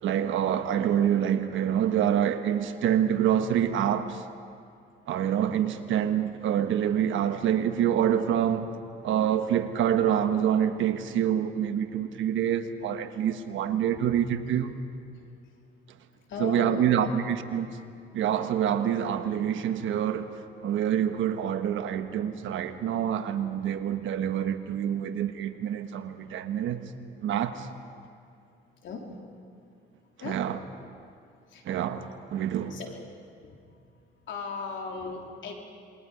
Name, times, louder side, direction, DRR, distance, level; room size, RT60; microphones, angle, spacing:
voice 1, 0.0-4.2 5.1-8.7 9.0-14.8 16.4-17.7 18.1-26.8 27.2-27.7 30.2-30.6 31.6-32.8, right 9 dB, 80° right, 1.2 m, -26 dB
voice 2, 16.3-17.1 25.2-25.3 28.8-29.2 30.2-30.4 31.5-31.6 32.7-33.0 33.5-33.6 34.3-35.5, left 4 dB, 70° left, 3.5 m, -37 dB
27.5 x 22.0 x 5.1 m
cardioid pair, 90°, 20 cm